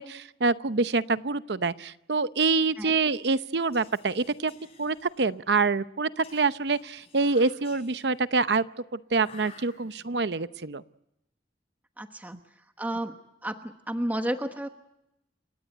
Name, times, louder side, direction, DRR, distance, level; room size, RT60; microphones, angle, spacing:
voice 1, 0.0-4.5 4.8-8.6 8.9-10.8, right 4 dB, 70° right, 14 dB, 0.8 m, -26 dB
Whispering, 3.5-5.5 6.2-8.3 9.2-10.2, left 4 dB, 35° left, 7.6 m, -53 dB
voice 2, 12.0-13.1 13.4-14.7, right 1 dB, 10° right, 6 dB, 1.1 m, -32 dB
29.5 x 17.5 x 7.9 m, 0.86 s
head